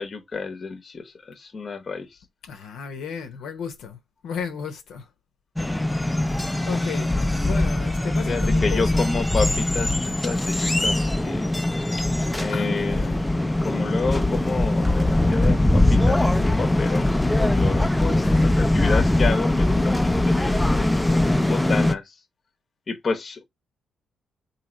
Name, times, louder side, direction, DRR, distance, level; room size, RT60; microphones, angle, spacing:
voice 1, 0.0-2.1 6.5-6.6 8.3-11.0 11.2-11.5 12.3-13.0 13.6-17.1 17.4-20.9 21.4-22.0 22.9-23.4, left 4 dB, 40° left, 0.8 m, -30 dB
voice 2, 2.4-5.1 6.6-9.3 12.5-13.3 18.2-18.6, left 6 dB, 80° left, 0.7 m, -34 dB
sound 1, 5.6-21.9, left 1 dB, 10° left, 0.4 m, -21 dB
3.1 x 2.8 x 3.8 m
cardioid pair, 85°, 0 cm